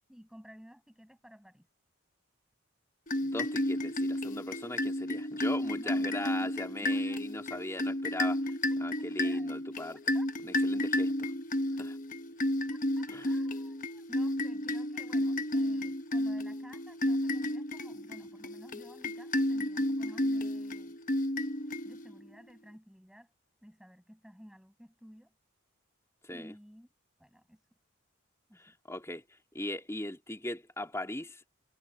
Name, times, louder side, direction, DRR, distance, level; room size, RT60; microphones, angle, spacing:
voice 1, 0.1-1.7 5.8-7.3 7.5-7.6 9.0-9.6 9.9-10.3 12.7-20.9 21.5-23.3 23.6-25.3 26.3-26.9 27.2-27.6 28.5-28.7, equal, 5° right, 6.3 m, -54 dB
sound 1, 3.1-22.3, left 1 dB, 40° left, 0.9 m, -32 dB
voice 2, 3.2-8.4 8.8-10.0 10.4-11.3 11.8-12.0 13.1-13.3 26.2-26.6 28.6-29.2 29.5-31.4, left 1 dB, 15° left, 3.6 m, -39 dB
head